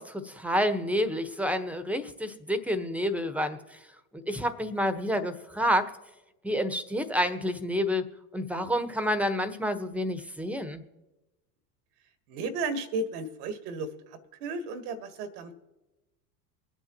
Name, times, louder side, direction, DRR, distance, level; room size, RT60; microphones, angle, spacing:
voice 1, 0.0-3.8 4.3-5.9 6.4-8.1 8.3-10.8, equal, 5° right, 10 dB, 1.1 m, -29 dB
voice 2, 12.3-13.9 14.4-15.5, right 3 dB, 70° right, 10 dB, 1.5 m, -33 dB
23.5 x 9.1 x 3.0 m, 1.0 s
hypercardioid pair, 80°, 48 cm